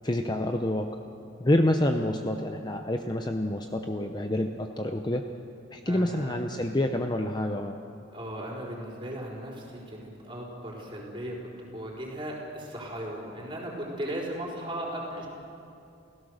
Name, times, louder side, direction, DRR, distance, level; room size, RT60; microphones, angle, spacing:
voice 1, 0.0-1.0 1.4-5.3 5.7-7.8, left 1 dB, 20° left, 5 dB, 0.7 m, -27 dB
voice 2, 5.9-6.4 8.1-15.3, right 1 dB, 25° right, -3 dB, 4.5 m, -37 dB
29.5 x 16.0 x 6.5 m, 2.6 s
head